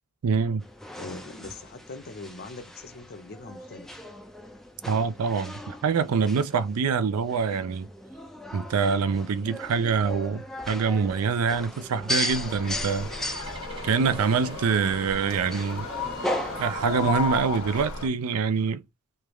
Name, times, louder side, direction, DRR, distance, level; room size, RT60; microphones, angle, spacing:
voice 1, 0.2-0.6 4.9-7.9 8.5-13.1 13.8-15.9 16.6-18.8, right 5 dB, 70° right, 0.4 m, -25 dB
sound 1, 0.6-17.1, left 1 dB, ahead, 0.3 m, -37 dB
voice 2, 1.0-4.0, left 3 dB, 45° left, 0.6 m, -41 dB
sound 2, 12.3-18.1, left 3 dB, 80° left, 1.5 m, -34 dB
Engine starting, 13.1-17.8, right 2 dB, 25° right, 0.8 m, -48 dB
3.3 x 2.3 x 3.0 m
head